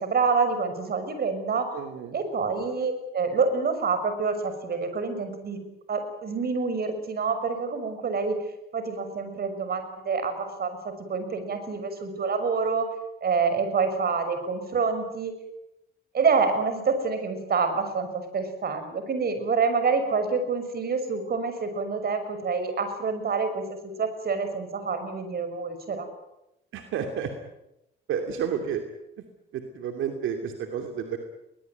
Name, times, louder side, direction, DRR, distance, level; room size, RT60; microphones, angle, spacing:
voice 1, 0.0-1.7 2.1-5.6 5.9-8.4 8.7-12.9 13.2-15.3 16.1-26.1, right 5 dB, 50° right, 9 dB, 6.2 m, -27 dB
voice 2, 1.7-2.2 26.7-27.3 28.1-28.8 29.5-31.2, right 7 dB, 85° right, 5 dB, 2.7 m, -30 dB
22.5 x 20.5 x 9.4 m, 0.87 s
cardioid pair, 90°, 20 cm